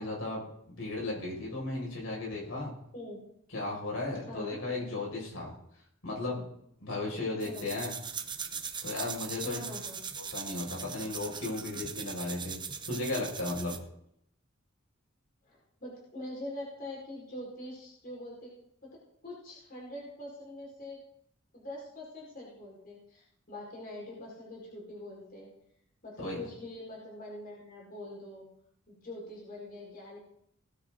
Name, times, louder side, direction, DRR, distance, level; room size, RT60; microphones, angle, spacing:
voice 1, 0.0-2.7 3.5-5.5 6.0-6.5 6.8-7.9 8.8-9.6 10.2-12.6 12.9-13.8 26.2-26.4, left 2 dB, 75° left, -2 dB, 6.0 m, -35 dB
voice 2, 4.3-4.6 7.4-7.7 9.4-10.0 15.4-18.6 18.8-21.0 21.5-25.5 26.0-28.5 28.9-30.2, left 1 dB, 45° left, -4 dB, 5.1 m, -44 dB
sound 1, 7.4-13.9, right 6 dB, 20° right, 1.0 m, -40 dB
19.0 x 10.0 x 4.0 m, 0.70 s
head